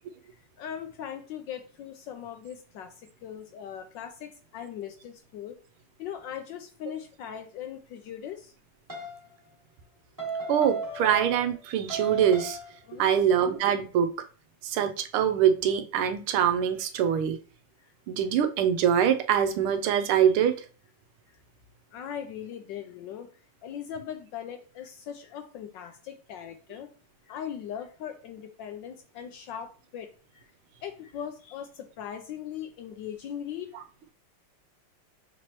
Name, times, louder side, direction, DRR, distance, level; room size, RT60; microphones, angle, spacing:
voice 1, 0.4-5.6 6.0-8.5 12.9-13.2 17.8-17.9 21.9-26.9 27.2-30.1 30.3-30.5 30.8-33.8, left 9 dB, 75° left, 6 dB, 1.1 m, -40 dB
sound 1, 8.9-9.2 10.2-11.6 11.9-12.8, right 3 dB, 10° right, 1.0 m, -35 dB
voice 2, 10.5-12.6 13.0-14.1 14.6-17.4 18.1-20.5, right 9 dB, 90° right, 7 dB, 1.5 m, -24 dB
6.0 x 3.0 x 2.9 m, 0.38 s
omnidirectional pair, 2.3 m